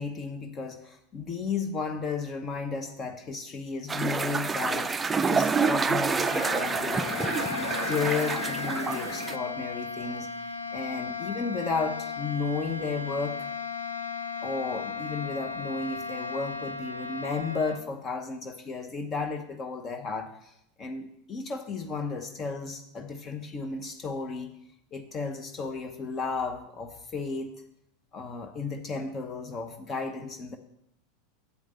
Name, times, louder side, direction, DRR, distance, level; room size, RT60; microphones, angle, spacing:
voice 1, 0.0-4.9 5.3-13.5 14.4-20.5 20.8-24.5 24.9-27.5 28.1-30.6, left 4 dB, 30° left, 6 dB, 0.8 m, -33 dB
sound 1, 3.9-9.4, right 5 dB, 15° right, 0.4 m, -28 dB
sound 2, 6.0-17.8, left 5 dB, 85° left, 0.5 m, -35 dB
8.2 x 5.0 x 6.5 m, 0.75 s
figure-of-eight pair, 85°, 0 cm